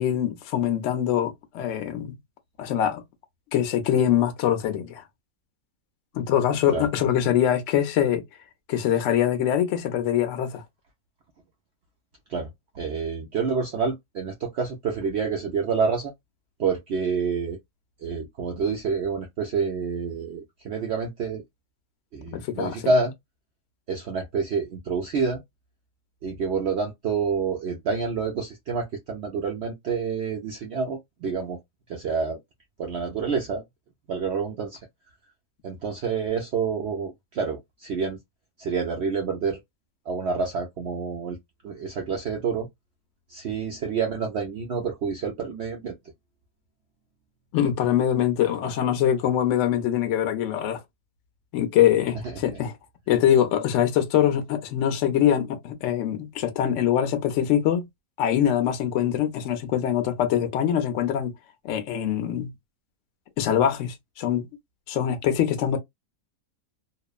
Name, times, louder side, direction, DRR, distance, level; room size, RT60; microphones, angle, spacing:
voice 1, 0.0-2.2 2.6-3.0 3.5-5.0 6.1-8.2 8.7-10.6 22.3-22.8 47.5-50.8 51.5-52.7 53.1-57.9 58.2-61.3 61.6-62.5 63.4-64.5 64.9-65.8, left 10 dB, 65° left, 0.8 m, -23 dB
voice 2, 12.3-16.1 16.6-17.6 18.0-21.4 22.1-23.1 23.9-25.4 26.2-31.6 31.9-32.4 32.8-33.6 34.1-34.8 35.6-38.2 38.6-39.6 40.1-41.4 41.6-42.7 43.3-46.0 52.2-52.3, right 5 dB, 70° right, 0.6 m, -28 dB
2.9 x 2.0 x 2.3 m
omnidirectional pair, 1.7 m